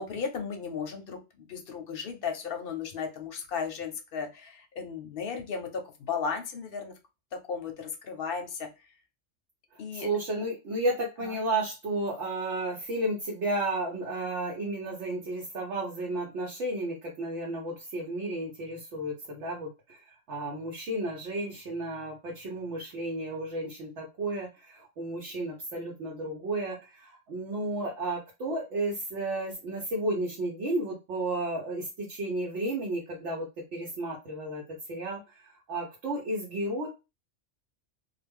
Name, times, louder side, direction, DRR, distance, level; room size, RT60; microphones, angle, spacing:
voice 1, 0.0-5.8 6.1-6.9 7.5-8.7 9.8-10.1 11.2-11.4, left 6 dB, 60° left, 4 dB, 0.7 m, -35 dB
voice 2, 9.9-20.0 20.3-33.5 33.7-34.6 34.9-36.9, right 2 dB, 75° right, -2 dB, 1.0 m, -33 dB
2.4 x 2.0 x 3.4 m, 0.27 s
omnidirectional pair, 1.3 m